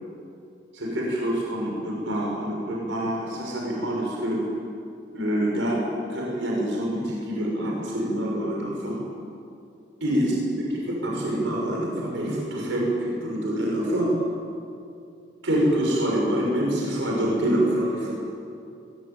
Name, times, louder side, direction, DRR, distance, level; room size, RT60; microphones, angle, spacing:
voice 1, 0.7-4.4 5.1-5.8 6.1-9.0 10.0-14.1 15.4-18.1, right 1 dB, 70° right, -2 dB, 6.9 m, -26 dB
22.5 x 21.5 x 9.3 m, 2.5 s
head